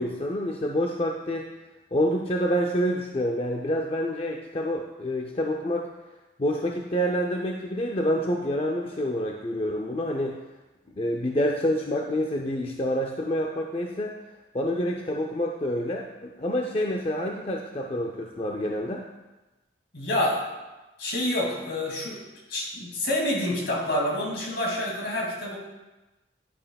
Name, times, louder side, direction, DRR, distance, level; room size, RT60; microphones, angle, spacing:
voice 1, 0.0-1.5 1.9-5.9 6.4-10.4 11.0-14.1 14.5-19.0, equal, 30° left, 1 dB, 0.5 m, -27 dB
voice 2, 19.9-20.4 21.0-22.2 22.5-25.6, left 1 dB, 70° left, -2 dB, 2.4 m, -27 dB
11.0 x 8.7 x 2.3 m, 1.1 s
head